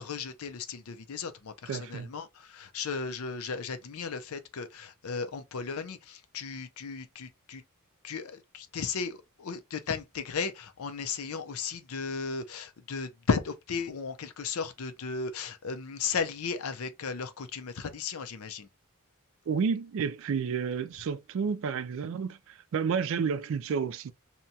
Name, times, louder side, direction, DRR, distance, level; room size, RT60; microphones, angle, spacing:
voice 1, 0.0-7.6 8.0-18.7, left 5 dB, 70° left, 0.5 m, -35 dB
voice 2, 1.7-2.1 19.5-24.1, right 6 dB, 60° right, 0.3 m, -31 dB
2.8 x 2.2 x 2.7 m
head